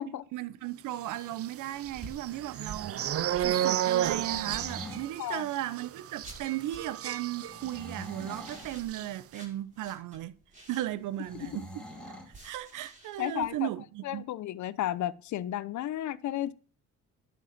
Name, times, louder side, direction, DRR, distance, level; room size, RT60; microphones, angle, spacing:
voice 1, 0.0-3.0 3.4-10.4 10.7-11.8 12.4-14.2, right 14 dB, 85° right, 0.8 m, -36 dB
sound 1, 1.3-8.0 8.3-8.5 8.8-9.1, right 11 dB, 50° right, 0.6 m, -32 dB
sound 2, 1.8-4.9 6.2-7.1 8.3-11.2 12.3-13.5, right 2 dB, 25° right, 5.8 m, -50 dB
sound 3, 3.9-5.1 7.4-8.7 11.2-12.3, equal, 5° left, 3.8 m, -44 dB
voice 2, 13.2-13.7 14.0-16.5, left 13 dB, 70° left, 0.8 m, -33 dB
11.5 x 5.6 x 7.4 m
cardioid pair, 90°, 30 cm